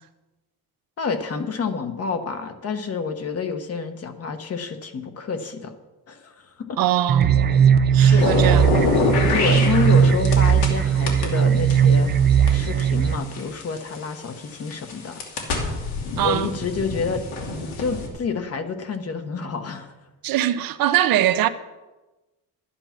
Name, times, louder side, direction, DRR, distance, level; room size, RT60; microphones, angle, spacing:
voice 1, 1.0-5.7 6.1-6.8 8.0-8.3 9.3-12.1 12.5-15.2 16.2-17.2 17.8-19.9, left 5 dB, 40° left, 1.2 m, -28 dB
voice 2, 6.8-7.4 7.9-8.7 16.2-16.5 20.2-21.5, right 12 dB, 60° right, 0.8 m, -22 dB
sound 1, 7.1-13.2, right 7 dB, 30° right, 0.4 m, -18 dB
sound 2, 8.2-10.7 11.1-14.0 14.6-18.1, left 3 dB, 80° left, 2.7 m, -25 dB
11.5 x 9.9 x 5.9 m
cardioid pair, 155°, 39 cm